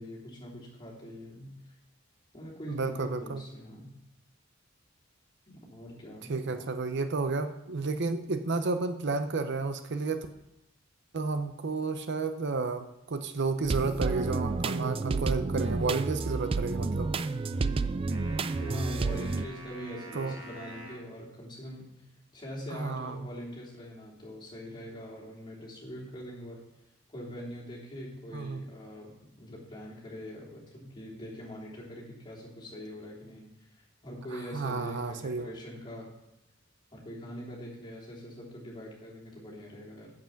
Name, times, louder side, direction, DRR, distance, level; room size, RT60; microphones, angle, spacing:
voice 1, 0.0-1.6 2.3-3.9 5.5-6.8 17.5-18.1 18.6-22.1 22.3-26.6 27.1-36.1 36.9-40.1, equal, 25° left, -6 dB, 3.2 m, -43 dB
voice 2, 2.7-3.4 6.3-10.3 11.1-17.1 20.1-20.3 22.7-23.3 28.3-28.6 34.3-35.5, right 3 dB, 60° right, 9 dB, 0.6 m, -31 dB
sound 1, 13.6-19.4, right 3 dB, 25° right, 0.3 m, -30 dB
sound 2, 18.1-21.1, right 1 dB, 75° right, 2.2 m, -47 dB
8.0 x 7.6 x 5.8 m, 0.95 s
head